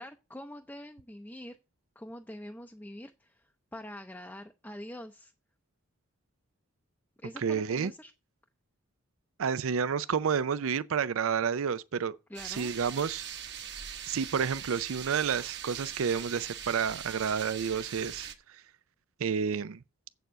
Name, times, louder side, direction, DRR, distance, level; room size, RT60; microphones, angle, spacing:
voice 1, 0.0-1.6 2.0-5.3 7.2-8.1 12.3-12.7, left 1 dB, 10° left, 0.5 m, -45 dB
voice 2, 7.4-7.9 9.4-12.2 12.4-13.2 14.1-18.6 19.2-19.8, right 6 dB, 75° right, 0.5 m, -30 dB
sound 1, 12.3-18.3, right 8 dB, 50° right, 1.2 m, -41 dB
8.0 x 6.9 x 7.4 m
head